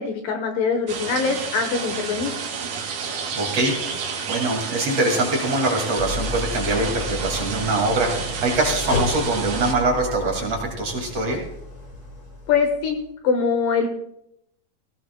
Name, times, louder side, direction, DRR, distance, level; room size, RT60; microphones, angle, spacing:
voice 1, 0.0-2.4 12.5-13.0 13.2-13.9, left 5 dB, 70° left, 6 dB, 2.5 m, -23 dB
sound 1, 0.9-9.7, right 5 dB, 65° right, 3.3 m, -30 dB
voice 2, 3.0-11.4, right 2 dB, 45° right, 0 dB, 3.1 m, -24 dB
Idling, 6.0-13.0, left 2 dB, 35° left, 2.6 m, -32 dB
19.0 x 17.0 x 2.3 m, 0.77 s
omnidirectional pair, 4.5 m